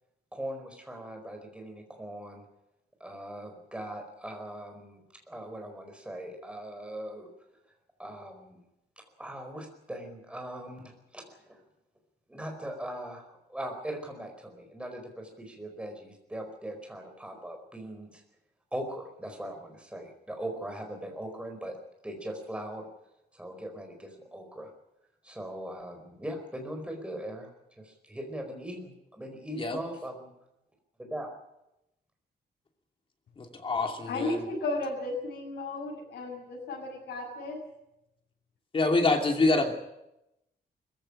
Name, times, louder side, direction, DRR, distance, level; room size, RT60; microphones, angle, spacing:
voice 1, 0.3-2.4 3.0-7.3 8.0-8.6 9.2-11.6 12.3-18.2 18.7-21.8 22.0-22.9 23.3-24.7 25.2-27.5 27.8-30.3 31.0-31.3, right 1 dB, 5° right, 3 dB, 4.7 m, -40 dB
voice 2, 33.4-34.4 38.7-39.7, left 3 dB, 30° left, 3 dB, 2.8 m, -26 dB
voice 3, 34.1-37.6, left 2 dB, 85° left, -4 dB, 6.8 m, -34 dB
21.5 x 15.5 x 9.9 m, 0.89 s
wide cardioid pair, 165°, 17 cm